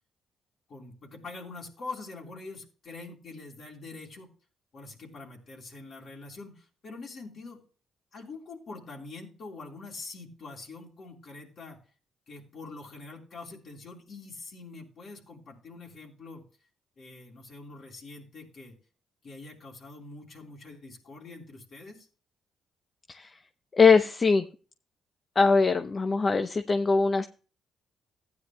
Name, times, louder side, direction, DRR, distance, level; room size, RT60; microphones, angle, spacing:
voice 1, 0.7-4.3 4.7-7.6 8.1-11.8 12.3-16.4 17.0-18.7 19.2-22.1, left 3 dB, 60° left, 0 dB, 3.8 m, -44 dB
voice 2, 23.7-24.4 25.4-27.3, left 4 dB, 40° left, 9 dB, 0.7 m, -22 dB
15.5 x 9.7 x 2.2 m, 0.38 s
supercardioid pair, 55°, 0 cm